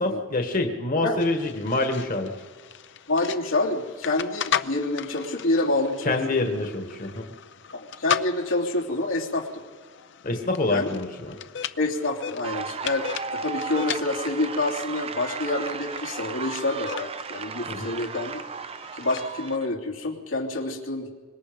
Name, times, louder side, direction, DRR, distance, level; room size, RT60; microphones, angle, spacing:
voice 1, 0.0-2.3 6.0-7.3 10.2-11.4 17.7-17.9, left 2 dB, 45° left, 4 dB, 1.5 m, -26 dB
sound 1, 1.2-19.6, left 8 dB, 60° left, 0.7 m, -37 dB
voice 2, 3.1-6.2 7.7-9.7 10.7-10.9 11.8-18.4 18.9-21.1, left 2 dB, 90° left, -1 dB, 3.0 m, -27 dB
sound 2, 12.4-19.7, right 5 dB, 30° right, 0.5 m, -35 dB
25.0 x 21.0 x 5.2 m, 1.5 s
head